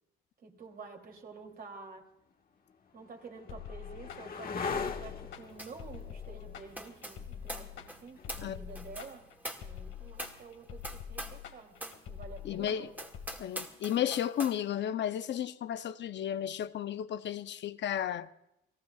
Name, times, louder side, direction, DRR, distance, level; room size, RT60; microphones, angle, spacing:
voice 1, 0.4-2.1 2.9-9.3 9.6-11.8 12.1-12.9, right 4 dB, 50° right, 3.1 m, -49 dB
sound 1, 1.4-1.5 2.3-9.9 12.3-12.8, left 5 dB, 45° left, 1.5 m, -42 dB
sound 2, 3.5-13.3, left 9 dB, 85° left, 2.0 m, -45 dB
sound 3, 5.6-5.9 6.1-11.5 11.8-12.0 12.5-12.6 12.9-14.6, right 1 dB, 10° right, 2.1 m, -44 dB
voice 2, 12.4-12.9 13.4-18.3, left 10 dB, 65° left, 0.7 m, -33 dB
30.0 x 18.0 x 2.4 m
cardioid pair, 90°, 20 cm